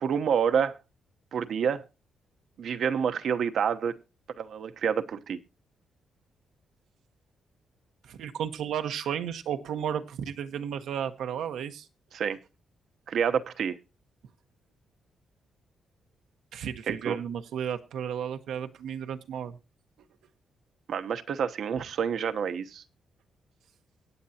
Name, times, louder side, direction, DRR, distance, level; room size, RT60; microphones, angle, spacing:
voice 1, 0.0-0.8 1.3-1.8 2.6-4.0 4.4-5.4 12.1-12.4 13.1-13.8 16.9-17.2 20.9-22.8, right 7 dB, 65° right, 10 dB, 0.9 m, -28 dB
voice 2, 8.0-11.9 16.5-19.6, right 8 dB, 85° right, 7 dB, 1.1 m, -33 dB
23.0 x 8.7 x 2.8 m, 0.29 s
cardioid pair, 110°, 0 cm